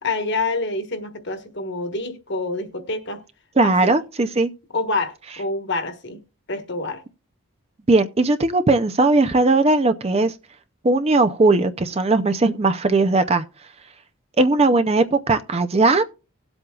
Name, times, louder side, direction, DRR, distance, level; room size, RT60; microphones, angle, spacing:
voice 1, 0.0-3.2 3.6-3.9 4.7-6.2 6.5-7.0, left 3 dB, 50° left, 1.3 m, -27 dB
voice 2, 3.6-4.5 7.9-10.3 10.8-13.4 14.4-16.0, right 3 dB, 25° right, 0.5 m, -18 dB
18.5 x 7.8 x 2.3 m
head